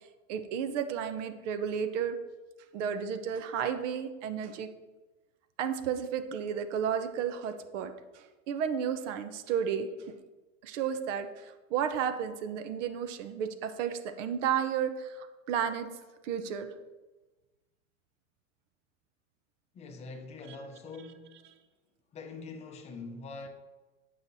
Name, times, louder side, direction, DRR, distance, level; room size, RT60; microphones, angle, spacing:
voice 1, 0.3-2.2 2.7-4.7 5.6-10.1 10.6-15.9 16.2-16.7, right 8 dB, 70° right, 0.7 m, -32 dB
voice 2, 19.7-21.4 22.1-23.5, left 3 dB, 15° left, 0.5 m, -44 dB
7.8 x 5.6 x 2.6 m
supercardioid pair, 140°, 39 cm